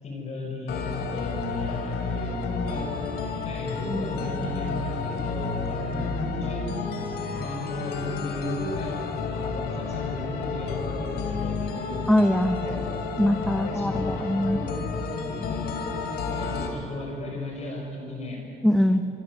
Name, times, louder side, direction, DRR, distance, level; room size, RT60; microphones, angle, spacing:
voice 1, 0.0-3.1 3.4-6.7 7.3-9.0 9.3-12.0 12.6-12.8 13.5-14.8 15.2-15.9 16.3-18.4, left 2 dB, 40° left, 0 dB, 6.1 m, -35 dB
sound 1, 0.7-16.7, left 4 dB, 75° left, 3.4 m, -31 dB
voice 2, 12.1-12.6 13.2-14.6 18.6-19.0, left 1 dB, 5° left, 6 dB, 1.1 m, -22 dB
24.5 x 24.5 x 8.2 m, 2.8 s
cardioid pair, 110°, 17 cm